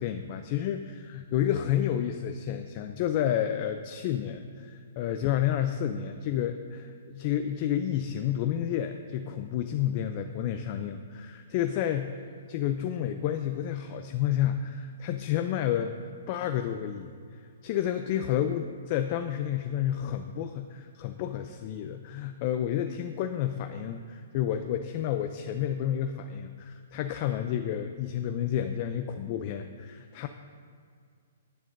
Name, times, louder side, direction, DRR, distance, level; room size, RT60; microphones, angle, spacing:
voice 1, 0.0-30.3, left 10 dB, 30° left, 7 dB, 0.4 m, -30 dB
15.5 x 10.0 x 2.6 m, 2.2 s
hypercardioid pair, 165°, 0 cm